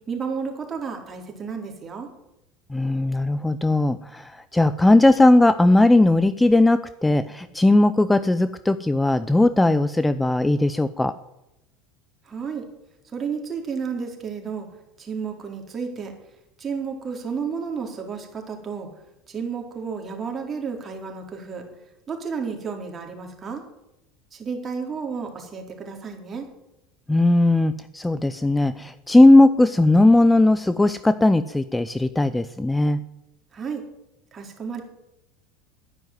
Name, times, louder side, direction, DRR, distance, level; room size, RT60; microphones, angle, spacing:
voice 1, 0.1-2.1 12.2-12.7 13.1-14.7 15.0-16.1 16.6-18.9 19.3-21.6 22.1-23.6 24.3-26.5 33.5-33.8 34.3-34.8, right 5 dB, 30° right, 2 dB, 4.1 m, -32 dB
voice 2, 2.7-11.1 27.1-33.0, left 2 dB, 10° left, 13 dB, 0.7 m, -18 dB
11.0 x 10.5 x 9.4 m, 0.90 s
hypercardioid pair, 80°, 0 cm